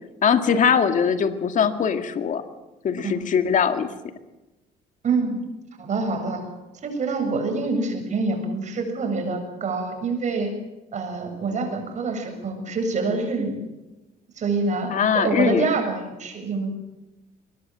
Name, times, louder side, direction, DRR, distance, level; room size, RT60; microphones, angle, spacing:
voice 1, 0.2-2.4 2.8-3.9 14.9-15.7, left 7 dB, 50° left, 8 dB, 2.1 m, -21 dB
voice 2, 5.0-5.4 5.8-6.5 6.8-10.6 10.9-13.7 14.4-16.7, right 3 dB, 45° right, 5 dB, 7.2 m, -26 dB
23.5 x 19.5 x 7.5 m, 1.0 s
cardioid pair, 110°, 17 cm